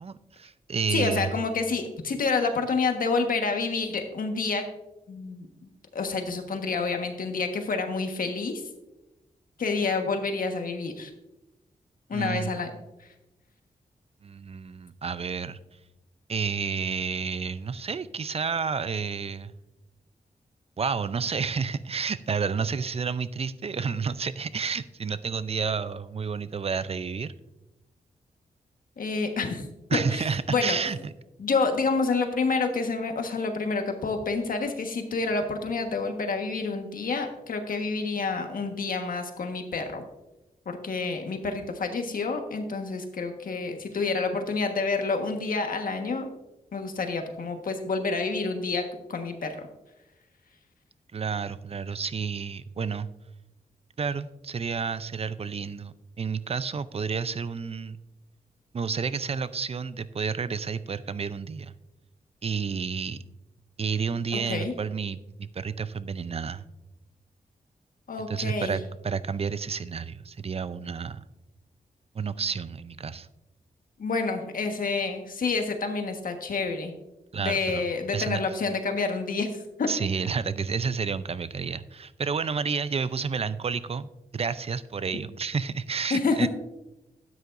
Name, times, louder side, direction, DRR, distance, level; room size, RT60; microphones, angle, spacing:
voice 1, 0.0-1.3 12.1-12.5 14.2-15.6 16.3-19.5 20.8-27.3 29.9-31.1 51.1-53.1 54.0-58.0 58.7-61.7 62.4-63.2 63.8-66.6 68.3-71.2 72.1-73.3 77.3-77.9 78.1-78.4 79.9-86.5, right 5 dB, 40° right, 15 dB, 0.5 m, -30 dB
voice 2, 0.9-4.7 5.1-5.5 5.9-8.6 9.6-11.1 12.1-12.7 29.0-30.8 31.4-40.0 40.6-46.3 46.7-49.6 64.3-64.7 68.1-68.8 74.0-76.9 77.4-79.9 86.1-86.5, left 4 dB, 70° left, 5 dB, 1.4 m, -28 dB
12.5 x 9.5 x 2.6 m, 0.97 s
cardioid pair, 85°, 15 cm